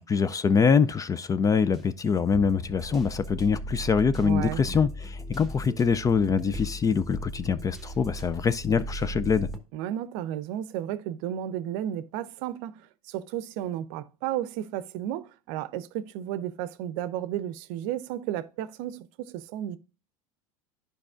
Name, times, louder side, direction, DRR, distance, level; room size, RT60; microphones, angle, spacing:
voice 1, 0.0-9.5, left 6 dB, 20° left, 0.4 m, -24 dB
sound 1, 1.3-9.6, right 1 dB, ahead, 1.1 m, -38 dB
voice 2, 4.2-4.6 9.7-12.7 13.1-19.8, right 11 dB, 55° right, 0.6 m, -33 dB
11.5 x 5.2 x 2.4 m
figure-of-eight pair, 80°, 18 cm